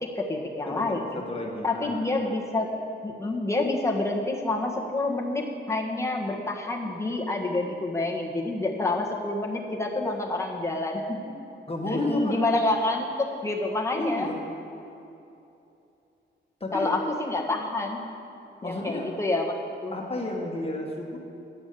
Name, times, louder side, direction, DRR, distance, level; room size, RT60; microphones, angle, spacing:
voice 1, 0.0-1.2 1.6-2.7 3.0-11.3 11.9-14.3 16.7-18.0 18.6-19.5 19.8-19.9, left 2 dB, 15° left, -1 dB, 1.5 m, -28 dB
voice 2, 0.7-2.0 10.1-10.2 11.7-12.4 14.0-14.4 16.6-16.9 18.6-19.2 19.9-21.2, left 2 dB, 30° left, -1 dB, 1.7 m, -31 dB
10.0 x 8.3 x 6.9 m, 2.8 s
cardioid pair, 90°, 20 cm